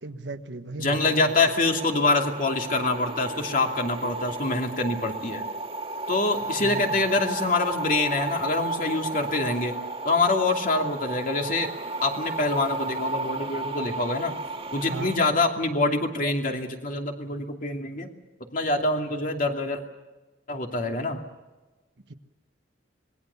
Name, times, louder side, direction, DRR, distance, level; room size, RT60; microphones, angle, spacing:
voice 1, 0.0-1.3 6.6-7.0 14.8-15.1 22.1-22.2, right 2 dB, 70° right, 7 dB, 1.2 m, -36 dB
voice 2, 0.8-5.4 6.1-9.8 10.0-11.7 12.0-14.4 14.7-18.1 18.5-19.8 20.5-21.2, left 2 dB, 45° left, 3 dB, 2.6 m, -25 dB
sound 1, 0.9-15.2, right 2 dB, 30° right, 2.0 m, -33 dB
26.0 x 20.5 x 7.0 m, 1.2 s
head